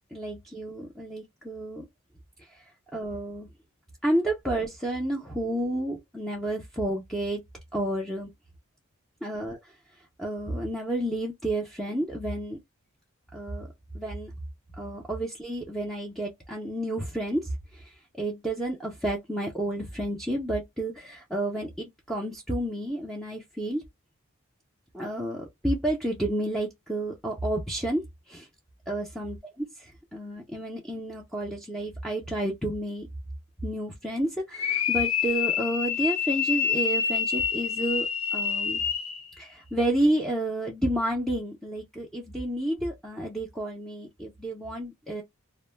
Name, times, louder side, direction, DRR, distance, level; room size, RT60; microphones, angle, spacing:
voice 1, 0.1-1.8 2.9-3.5 4.0-7.4 7.7-8.3 9.2-9.6 10.2-12.6 13.3-13.7 13.9-14.3 14.8-17.4 17.7-17.8 18.2-23.8 24.9-28.0 28.3-28.5 28.9-29.7 30.1-33.1 33.6-38.8 39.4-45.2, right 1 dB, ahead, 0.5 m, -30 dB
sound 1, 34.5-39.3, left 7 dB, 70° left, 0.5 m, -27 dB
2.1 x 2.0 x 3.1 m
head